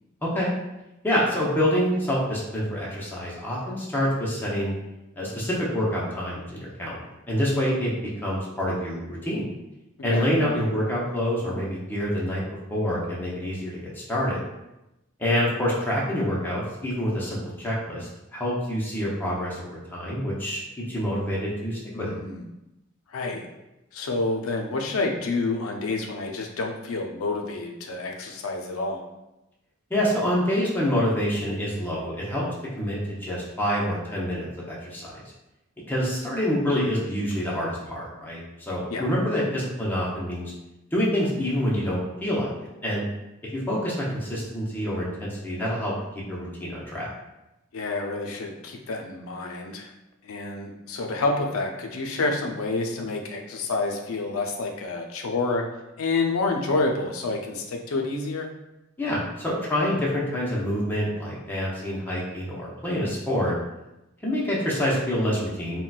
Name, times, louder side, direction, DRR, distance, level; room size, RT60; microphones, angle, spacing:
voice 1, 1.0-4.7 5.2-7.9 8.2-9.5 10.0-12.4 12.7-14.4 15.2-20.6 20.9-22.1 29.9-32.5 32.8-35.2 35.9-40.5 40.9-43.0 43.5-45.9 46.3-47.1 59.0-63.5 64.2-65.8, equal, 10° left, -6 dB, 0.6 m, -27 dB
voice 2, 21.9-22.5 23.1-23.4 23.9-29.0 38.9-39.0 47.7-49.9 50.2-55.6 56.0-58.5, left 3 dB, 85° left, 2 dB, 0.5 m, -28 dB
3.8 x 2.1 x 2.3 m, 0.95 s
head